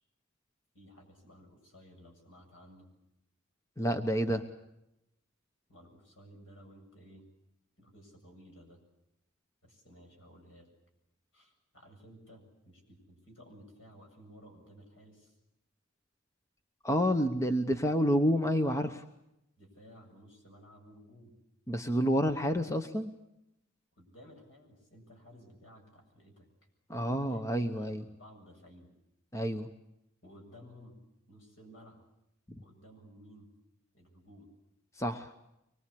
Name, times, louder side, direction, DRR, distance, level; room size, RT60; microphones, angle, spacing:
voice 1, 0.7-2.9 5.7-7.2 7.8-8.8 9.6-10.7 11.3-15.4 19.6-21.3 24.0-26.5 27.1-28.9 30.2-31.0 31.3-32.0 32.6-33.5 33.9-34.5, equal, 70° left, 3 dB, 7.6 m, -55 dB
voice 2, 3.8-4.5 16.8-19.0 21.7-23.1 26.9-28.0 29.3-29.7 32.5-32.6 35.0-35.3, equal, 15° left, 7 dB, 0.9 m, -29 dB
24.5 x 22.5 x 8.5 m, 0.86 s
head